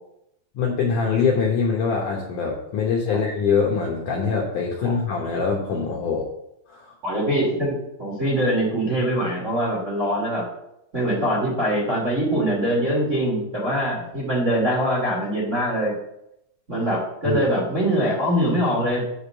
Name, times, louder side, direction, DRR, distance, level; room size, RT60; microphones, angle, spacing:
voice 1, 0.6-6.3 6.7-6.9 17.2-17.4, left 5 dB, 70° left, -2 dB, 2.0 m, -23 dB
voice 2, 7.0-10.4 10.9-15.9 16.7-19.1, equal, 25° right, -5 dB, 2.0 m, -23 dB
7.6 x 5.1 x 7.2 m, 0.82 s
omnidirectional pair, 4.8 m